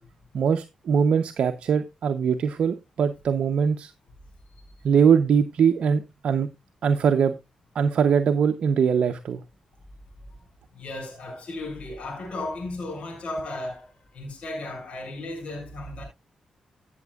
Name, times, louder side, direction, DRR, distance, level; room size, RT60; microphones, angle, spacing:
voice 1, 0.3-3.9 4.8-6.5 6.8-7.3 7.7-9.4, right 7 dB, 70° right, 0.6 m, -22 dB
voice 2, 10.7-16.0, left 2 dB, 75° left, 5.3 m, -35 dB
16.5 x 7.1 x 2.3 m
cardioid pair, 60°, 2 cm